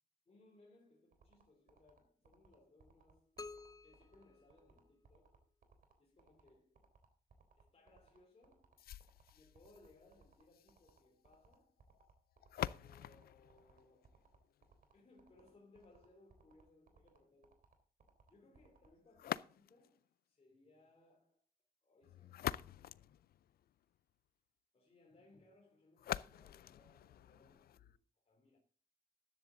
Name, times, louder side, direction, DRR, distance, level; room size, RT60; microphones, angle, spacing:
voice 1, 0.3-3.4 3.8-5.5 6.0-6.9 7.6-8.8 9.3-11.8 12.5-14.2 14.9-17.7 18.0-21.4 21.8-23.2 24.7-28.6, left 2 dB, 40° left, 3.2 m, -67 dB
sound 1, 1.1-18.9, right 6 dB, 65° right, 3.4 m, -67 dB
sound 2, 3.4-5.3, left 3 dB, 25° left, 0.5 m, -53 dB
sound 3, 8.8-14.8 19.1-20.0 22.0-24.0 26.0-28.0, left 12 dB, 85° left, 0.4 m, -46 dB
13.5 x 10.5 x 3.8 m
cardioid pair, 85°, 15 cm